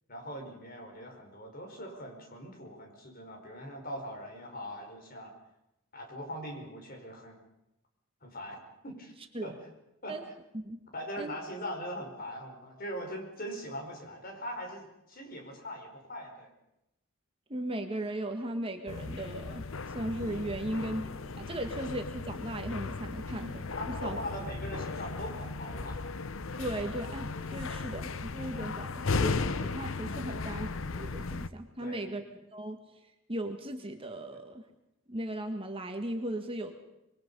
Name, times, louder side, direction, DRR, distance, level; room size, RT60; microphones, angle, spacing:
voice 1, 0.1-5.3 5.9-7.4 8.2-9.1 9.4-9.6 10.0-10.2 10.9-16.5 20.6-20.7 21.6-21.7 23.3-23.5 23.8-26.0 30.2-30.4 31.8-32.2, equal, 45° left, 3 dB, 4.9 m, -41 dB
voice 2, 17.5-23.8 24.0-24.2 26.6-32.2 32.5-32.8 33.3-34.6 35.1-36.7, right 1 dB, 25° right, 5 dB, 1.6 m, -37 dB
sound 1, 18.9-31.5, left 3 dB, 70° left, 0.8 m, -36 dB
26.0 x 22.5 x 5.4 m, 0.88 s
head